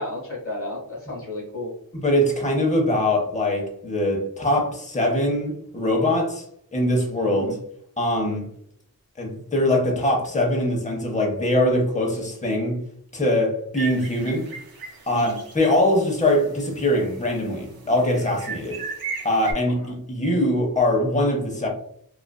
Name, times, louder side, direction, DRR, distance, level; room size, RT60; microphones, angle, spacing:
voice 1, 0.0-1.7 7.3-7.6 15.1-15.4 19.8-19.9, left 2 dB, 40° left, 1.1 m, -33 dB
voice 2, 1.9-6.4 6.7-7.6 8.0-8.4 9.2-12.8 13.1-14.5 15.1-18.8 19.2-21.7, left 1 dB, 20° left, 0.7 m, -22 dB
sound 1, 13.7-15.7 16.0-16.1 16.6-17.4 18.0-19.5, right 5 dB, 80° right, 0.6 m, -36 dB
2.4 x 2.4 x 2.2 m
wide cardioid pair, 60°, 36 cm